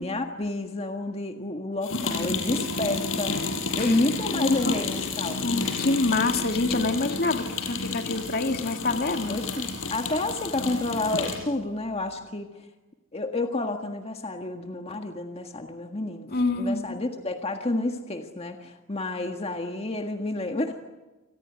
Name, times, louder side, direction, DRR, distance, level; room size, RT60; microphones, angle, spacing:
voice 1, 0.0-3.4 3.8-5.4 9.3-12.7 13.1-20.8, left 2 dB, 30° left, 4 dB, 1.7 m, -30 dB
sound 1, 1.8-11.5, left 4 dB, 85° left, 6.1 m, -31 dB
voice 2, 5.4-9.4 16.3-17.0, left 3 dB, 55° left, 6 dB, 2.2 m, -26 dB
28.5 x 20.5 x 9.3 m, 1.1 s
head